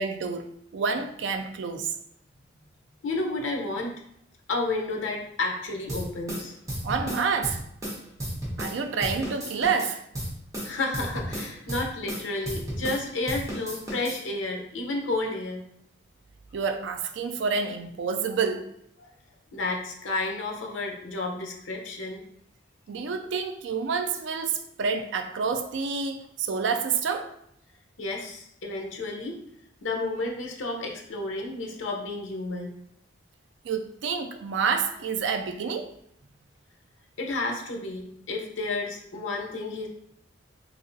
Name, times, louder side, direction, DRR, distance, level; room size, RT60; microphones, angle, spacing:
voice 1, 0.0-1.9 6.8-7.6 8.6-10.0 16.5-18.7 22.9-27.3 33.6-35.9, right 5 dB, 70° right, 0.4 m, -28 dB
voice 2, 3.0-3.9 4.5-6.6 10.6-15.6 19.5-22.2 28.0-29.4 29.8-32.8 37.2-39.9, left 2 dB, 85° left, 0.7 m, -31 dB
sound 1, 5.9-8.8 9.0-13.0 13.3-14.2, equal, 15° right, 1.0 m, -33 dB
3.4 x 2.8 x 2.6 m
head